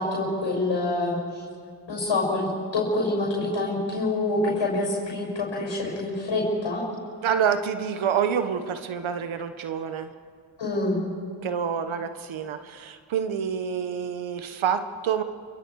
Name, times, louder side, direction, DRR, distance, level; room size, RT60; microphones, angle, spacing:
voice 1, 0.0-1.4 1.9-6.8 10.6-11.0, left 2 dB, 70° left, -4 dB, 6.4 m, -26 dB
voice 2, 7.2-10.1 11.4-15.2, right 7 dB, 85° right, 9 dB, 1.1 m, -27 dB
27.5 x 25.0 x 4.7 m, 2.2 s
cardioid pair, 80°, 46 cm